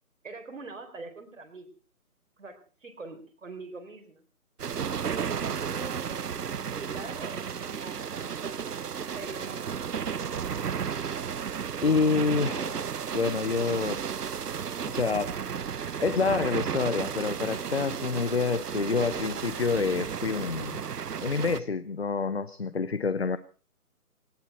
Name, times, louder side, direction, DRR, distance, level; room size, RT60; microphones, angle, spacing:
voice 1, 0.2-1.7 2.4-4.2 5.0-10.1, right 3 dB, 55° right, 5 dB, 4.1 m, -43 dB
sound 1, 4.6-21.6, right 7 dB, 90° right, 1.0 m, -33 dB
voice 2, 11.8-12.9 13.1-14.0 14.9-15.3 16.0-20.9 21.2-23.4, left 4 dB, 45° left, 14 dB, 0.8 m, -27 dB
19.0 x 16.5 x 4.3 m, 0.36 s
hypercardioid pair, 180°, 45 cm